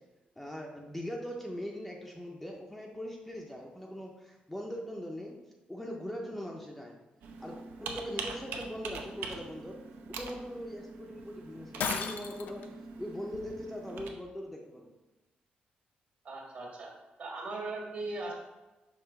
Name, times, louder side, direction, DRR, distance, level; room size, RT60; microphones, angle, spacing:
voice 1, 0.4-5.4 5.7-6.9 7.4-9.8 10.1-12.7 13.0-14.9, equal, 5° left, 0 dB, 0.5 m, -41 dB
Computer keyboard, 7.2-14.1, right 4 dB, 85° right, 0.7 m, -43 dB
Shatter, 11.8-12.7, left 6 dB, 70° left, 0.5 m, -34 dB
voice 2, 16.2-16.9 17.2-18.3, right 2 dB, 55° right, -2 dB, 1.7 m, -38 dB
5.6 x 3.1 x 5.7 m, 1.1 s
wide cardioid pair, 170°, 3 cm